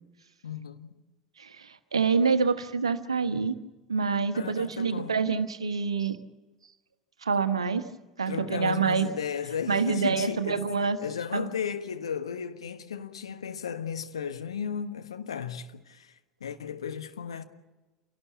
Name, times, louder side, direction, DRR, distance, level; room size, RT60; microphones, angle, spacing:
voice 1, 0.4-1.0 4.3-5.2 8.3-10.6 11.0-16.1 16.4-17.4, left 7 dB, 75° left, 1.4 m, -35 dB
voice 2, 1.4-3.6 3.9-6.2 7.2-7.8 8.2-9.1 9.7-11.0 11.3-11.5, right 5 dB, 75° right, 1.2 m, -26 dB
27.5 x 18.0 x 8.3 m
figure-of-eight pair, 75°, 3 cm